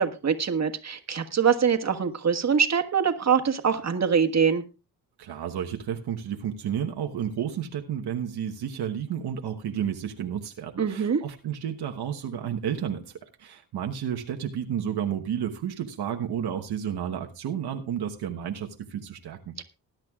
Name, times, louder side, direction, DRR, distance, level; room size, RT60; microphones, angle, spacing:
voice 1, 0.0-4.6 10.8-11.2 19.6-19.7, right 6 dB, 45° right, 6 dB, 1.6 m, -24 dB
voice 2, 5.2-13.0 13.4-19.5, right 9 dB, 85° right, 3 dB, 1.2 m, -31 dB
20.0 x 10.5 x 2.4 m, 0.29 s
cardioid pair, 85°, 38 cm